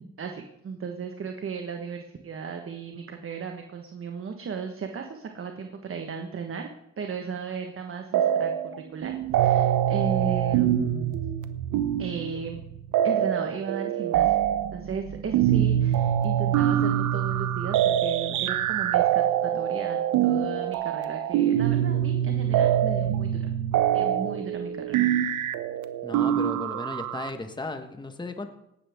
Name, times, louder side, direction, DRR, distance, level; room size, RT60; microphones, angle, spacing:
voice 1, 0.0-6.7 7.0-8.5 8.8-11.2 12.0-12.6 13.0-14.3 14.7-23.5 23.9-25.1, right 6 dB, 45° right, 4 dB, 1.4 m, -35 dB
sound 1, 8.1-8.8 9.0-27.3, right 11 dB, 85° right, 0.9 m, -24 dB
voice 2, 26.0-28.5, left 2 dB, 15° left, 7 dB, 1.3 m, -35 dB
17.5 x 12.5 x 3.6 m, 0.83 s
cardioid pair, 90°, 30 cm